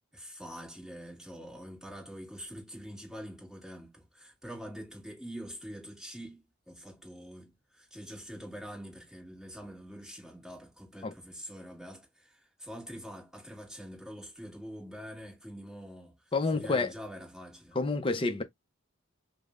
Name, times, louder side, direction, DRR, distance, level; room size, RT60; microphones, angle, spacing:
voice 1, 0.1-17.8, equal, ahead, 1.5 m, -45 dB
voice 2, 16.3-16.9 17.7-18.4, left 3 dB, 25° left, 0.5 m, -28 dB
5.1 x 2.0 x 2.4 m
head